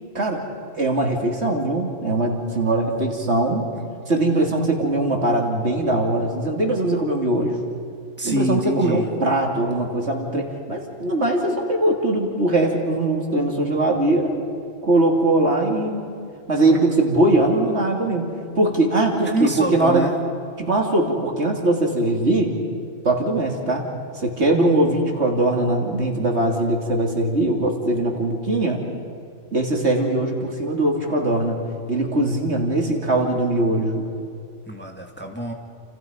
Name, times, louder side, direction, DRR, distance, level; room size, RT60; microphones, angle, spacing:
voice 1, 0.8-3.7 4.1-7.6 8.2-14.4 14.8-16.0 16.5-20.1 20.6-22.5 23.1-23.8 24.2-28.8 29.5-31.6 31.9-34.0, right 2 dB, 60° right, 1 dB, 3.3 m, -21 dB
voice 2, 8.2-9.1 19.3-20.2 34.7-35.5, equal, 10° left, 1 dB, 2.0 m, -26 dB
29.5 x 29.0 x 5.4 m, 2.3 s
omnidirectional pair, 1.3 m